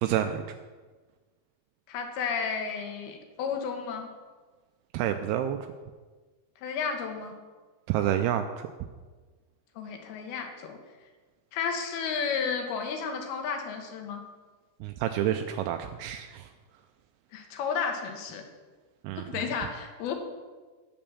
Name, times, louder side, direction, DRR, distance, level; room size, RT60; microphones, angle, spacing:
voice 1, 0.0-0.4 4.9-5.6 7.9-8.7 14.8-16.5 19.0-19.5, right 11 dB, 85° right, 6 dB, 2.5 m, -29 dB
voice 2, 1.9-4.1 6.6-7.4 9.8-10.8 11.5-14.2 17.3-18.5 19.2-20.1, left 6 dB, 75° left, 5 dB, 3.1 m, -32 dB
8.9 x 8.8 x 6.9 m, 1.4 s
omnidirectional pair, 4.6 m